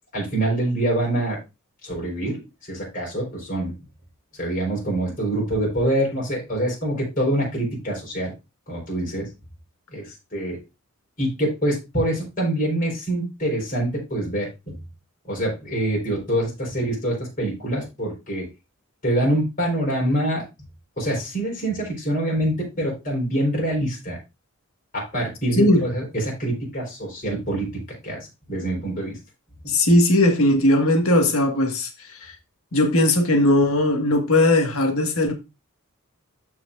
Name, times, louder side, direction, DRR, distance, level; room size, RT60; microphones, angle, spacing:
voice 1, 0.1-1.4 1.8-3.7 4.4-8.3 8.7-9.2 9.9-10.6 11.2-14.7 15.3-18.5 19.0-20.5 21.0-24.2 24.9-28.2 28.5-29.2, right 1 dB, 40° left, 4.4 m, -25 dB
voice 2, 29.7-32.3 32.7-35.3, left 1 dB, 65° left, 1.7 m, -18 dB
13.5 x 4.7 x 2.5 m
head